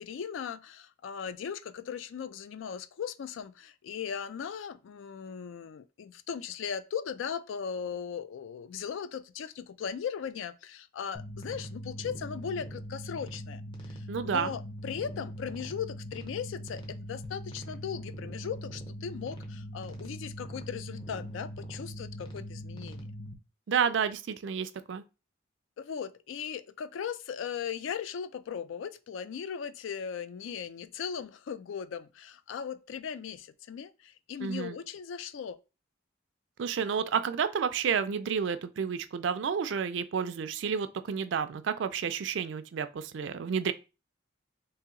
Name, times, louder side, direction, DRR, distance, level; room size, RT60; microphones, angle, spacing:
voice 1, 0.0-23.1 25.8-35.6, left 7 dB, 75° left, 0.3 m, -38 dB
Background Ship Noise, 11.1-23.3, equal, 25° left, 0.6 m, -41 dB
voice 2, 14.1-14.5 23.7-25.0 34.4-34.8 36.6-43.7, right 6 dB, 65° right, 0.3 m, -30 dB
2.9 x 2.8 x 3.6 m
head